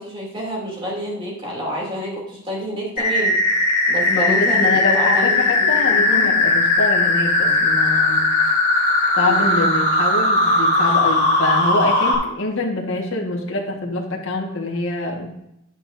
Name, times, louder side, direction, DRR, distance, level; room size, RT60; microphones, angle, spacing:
voice 1, 0.0-3.4 3.9-6.3 9.2-9.5, equal, 25° right, -4 dB, 2.8 m, -28 dB
sound 1, 3.0-12.1, left 2 dB, 35° left, 2.4 m, -18 dB
voice 2, 4.1-8.3 9.2-15.3, left 2 dB, 60° left, -1 dB, 1.6 m, -25 dB
10.5 x 9.0 x 2.7 m, 0.81 s
head